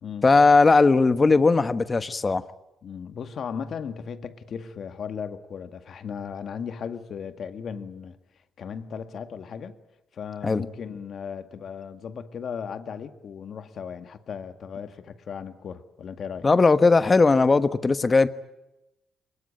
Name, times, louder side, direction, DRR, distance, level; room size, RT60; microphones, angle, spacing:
voice 1, 0.2-2.4 10.4-10.6 16.4-18.3, left 3 dB, 30° left, 12 dB, 1.3 m, -18 dB
voice 2, 2.8-8.2 8.6-9.8 10.1-16.5, left 7 dB, 60° left, 9 dB, 2.0 m, -36 dB
23.0 x 21.0 x 8.9 m, 0.93 s
cardioid pair, 90°, 0 cm